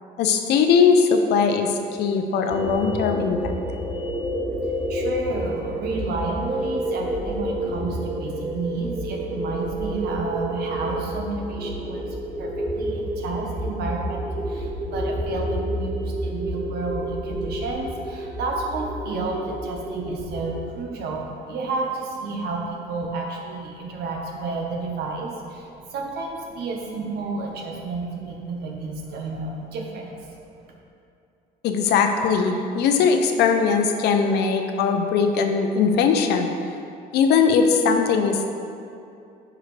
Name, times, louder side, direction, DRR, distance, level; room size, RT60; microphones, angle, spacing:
voice 1, 0.2-3.5 31.6-36.5 37.1-38.5, left 5 dB, 80° left, 5 dB, 0.7 m, -20 dB
sound 1, 2.5-20.7, equal, 10° right, 0.6 m, -29 dB
voice 2, 4.5-30.7, right 3 dB, 70° right, 0 dB, 1.2 m, -31 dB
9.2 x 4.9 x 3.3 m, 2.6 s
cardioid pair, 110°, 17 cm